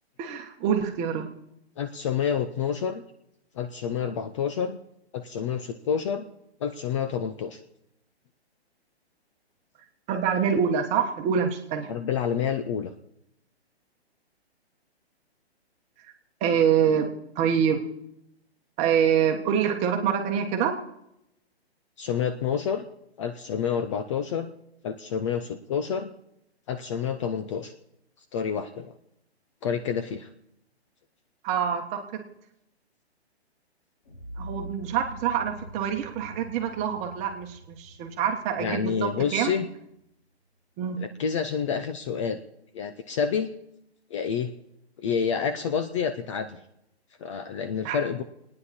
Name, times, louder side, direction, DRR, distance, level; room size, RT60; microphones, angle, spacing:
voice 1, 0.2-1.3 10.1-11.9 16.0-16.1 16.4-17.8 18.8-20.8 31.4-32.2 34.4-39.5 40.8-41.0 47.8-48.0, right 8 dB, 20° right, 4 dB, 1.4 m, -26 dB
voice 2, 1.8-3.0 3.6-4.8 5.1-6.2 6.6-7.6 11.9-12.9 22.0-22.9 23.2-24.5 24.8-26.1 26.7-27.7 28.3-28.9 29.6-30.3 38.6-39.7 41.0-42.4 42.7-43.5 44.1-44.5 45.0-46.6 47.2-48.2, left 7 dB, 30° left, 9 dB, 0.6 m, -28 dB
sound 1, 34.0-40.1, equal, 60° left, 5.7 m, -44 dB
29.0 x 9.8 x 4.3 m, 0.80 s
hypercardioid pair, 145°, 33 cm